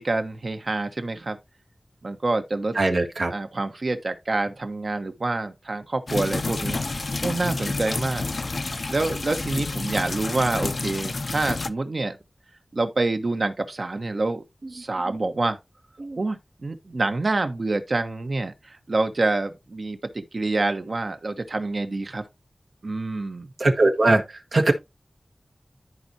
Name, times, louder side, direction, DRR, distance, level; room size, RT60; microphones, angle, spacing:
voice 1, 0.0-1.4 2.0-2.8 3.3-8.3 8.9-12.2 12.7-14.4 14.7-15.6 16.2-22.3 22.8-23.5, right 2 dB, 70° right, 1.2 m, -27 dB
voice 2, 2.7-3.3 15.1-15.2 16.0-16.2 16.9-17.0 23.6-24.2 24.5-24.7, right 2 dB, 85° right, 1.5 m, -20 dB
sound 1, 6.1-11.7, left 3 dB, 70° left, 0.6 m, -29 dB
13.5 x 4.6 x 2.7 m
wide cardioid pair, 50°, 0 cm